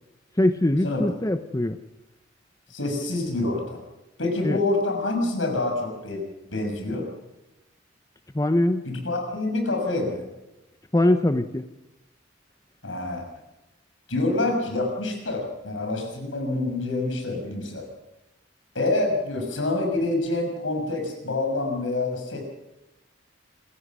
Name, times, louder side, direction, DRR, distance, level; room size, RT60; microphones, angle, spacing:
voice 1, 0.4-1.8 4.4-4.6 8.3-8.8 10.9-11.6, left 1 dB, 15° left, 9 dB, 0.7 m, -22 dB
voice 2, 2.7-3.8 4.2-6.2 6.5-7.1 8.8-10.2 12.8-13.2 14.1-17.9 18.7-22.4, left 2 dB, 80° left, 3 dB, 6.5 m, -26 dB
27.0 x 15.0 x 6.2 m, 0.95 s
head